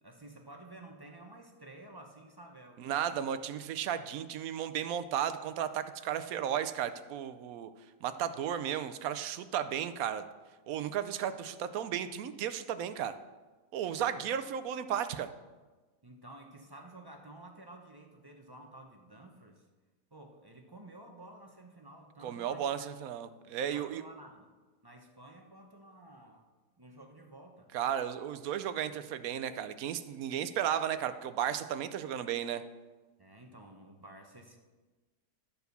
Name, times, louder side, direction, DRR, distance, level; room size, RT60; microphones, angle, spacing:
voice 1, 0.0-3.3 14.0-14.3 16.0-19.7 20.1-22.9 23.7-24.5 24.8-26.5 26.8-27.7 33.2-34.6, right 1 dB, 25° right, 2 dB, 0.5 m, -52 dB
voice 2, 2.8-7.7 8.0-10.2 10.7-13.1 13.7-15.3 22.2-24.0 27.7-32.6, right 9 dB, 70° right, 11 dB, 1.0 m, -34 dB
12.5 x 4.7 x 6.7 m, 1.3 s
omnidirectional pair, 1.7 m